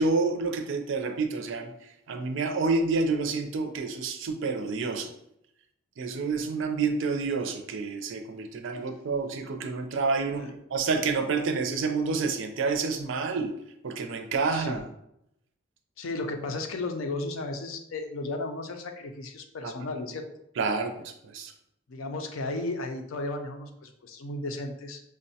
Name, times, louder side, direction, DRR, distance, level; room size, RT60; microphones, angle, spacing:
voice 1, 0.0-1.7 2.1-5.1 6.0-10.4 10.7-13.5 13.8-14.8 20.6-21.5, right 4 dB, 65° right, 6 dB, 0.4 m, -28 dB
voice 2, 14.5-14.9 16.0-20.3 21.9-25.0, left 2 dB, 85° left, 5 dB, 0.5 m, -34 dB
5.0 x 2.1 x 2.7 m, 0.81 s
head